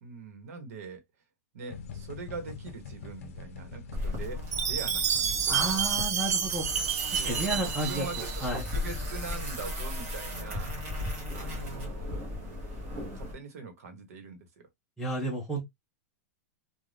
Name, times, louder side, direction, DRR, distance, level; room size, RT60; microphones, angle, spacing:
voice 1, 0.0-1.0 1.5-6.0 7.2-10.8 11.3-12.1 13.1-14.7, right 4 dB, 70° right, 1.1 m, -42 dB
sound 1, 1.7-7.6, left 5 dB, 55° left, 0.6 m, -44 dB
sound 2, 3.9-13.3, left 1 dB, 25° right, 0.9 m, -36 dB
Chime, 4.5-8.6, right 8 dB, 85° right, 0.6 m, -29 dB
voice 2, 5.5-6.7 7.1-8.6 15.0-15.6, right 1 dB, ahead, 0.5 m, -32 dB
2.5 x 2.3 x 3.3 m
supercardioid pair, 180°, 9 cm